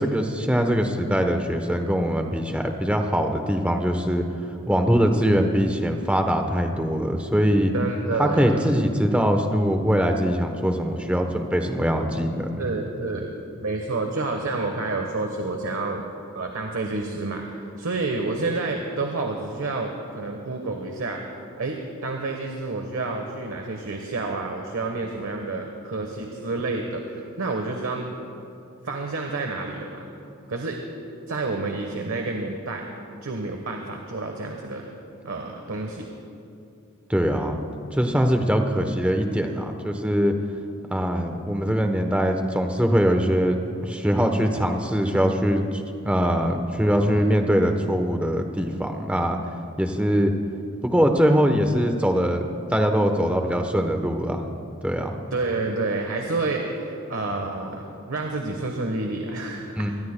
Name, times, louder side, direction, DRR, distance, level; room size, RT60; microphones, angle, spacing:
voice 1, 0.0-4.2 4.7-7.7 8.2-12.6 37.1-37.6 37.9-40.3 40.9-49.4 49.8-50.3 50.8-54.5 54.8-55.2 59.8-59.9, equal, 5° right, 4 dB, 0.8 m, -22 dB
voice 2, 7.7-8.7 12.6-13.3 13.6-16.0 16.3-21.2 21.6-21.8 22.0-28.1 28.8-30.1 30.5-30.8 31.3-32.8 33.2-34.9 35.2-36.1 46.9-47.2 55.3-59.9, right 3 dB, 80° right, 2 dB, 1.1 m, -29 dB
23.5 x 19.5 x 2.2 m, 2.6 s
head